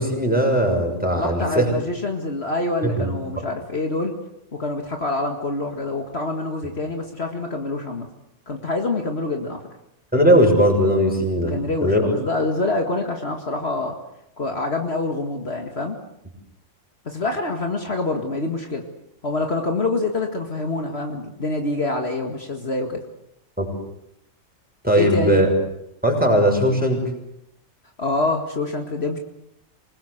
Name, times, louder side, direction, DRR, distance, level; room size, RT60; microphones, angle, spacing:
voice 1, 0.0-1.7 2.8-3.1 10.1-12.1 23.6-23.7 24.8-25.5 26.0-27.0, equal, 5° right, 1 dB, 6.4 m, -19 dB
voice 2, 1.1-4.1 4.5-8.1 8.5-9.6 11.5-14.0 14.4-16.0 17.1-18.8 19.2-23.0 24.9-25.4 28.0-29.2, left 2 dB, 50° left, 3 dB, 2.3 m, -26 dB
27.0 x 20.5 x 8.1 m, 0.80 s
omnidirectional pair, 1.4 m